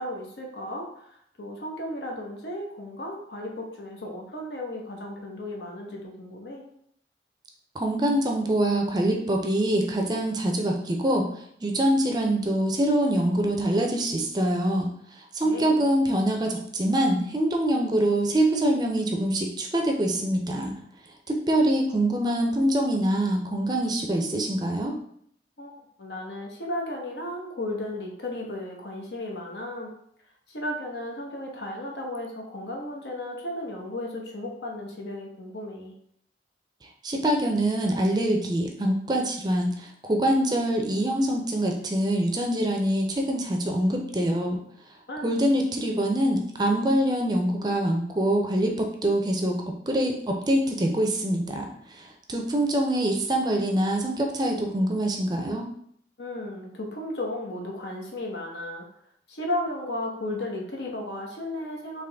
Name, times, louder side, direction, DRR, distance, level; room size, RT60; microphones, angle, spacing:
voice 1, 0.0-6.6 15.4-15.8 25.6-25.7 26.0-29.9 30.5-35.9 45.1-45.3 56.2-58.9 59.3-62.0, left 1 dB, 75° left, 0 dB, 0.9 m, -34 dB
voice 2, 7.7-11.3 11.6-20.7 21.3-24.9 37.0-44.6 45.2-49.6 49.9-51.7 52.0-55.6, right 1 dB, 25° right, 2 dB, 0.5 m, -24 dB
3.8 x 2.9 x 3.4 m, 0.68 s
head